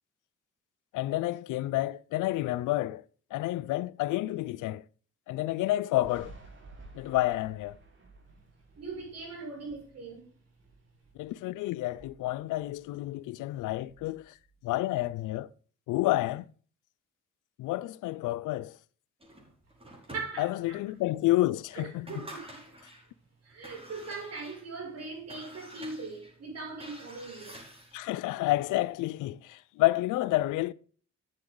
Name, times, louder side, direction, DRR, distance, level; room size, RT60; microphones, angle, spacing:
voice 1, 0.9-3.0 3.3-4.8 5.3-6.3 6.9-7.8 11.2-14.3 14.6-15.5 15.9-16.5 17.6-18.7 20.4-22.2 27.9-30.7, left 16 dB, 85° left, 0.5 m, -29 dB
Thunder, 6.0-11.5 11.8-13.3 13.5-15.3, right 2 dB, 40° right, 4.4 m, -54 dB
voice 2, 8.8-10.3 20.1-20.8 21.7-22.6 23.4-27.6, right 4 dB, 55° right, 6.2 m, -40 dB
sound 1, 19.2-20.8 21.3-21.4 21.9-23.1 23.5-28.1, right 1 dB, 20° right, 5.7 m, -49 dB
12.0 x 7.9 x 3.8 m
cardioid pair, 90°, 30 cm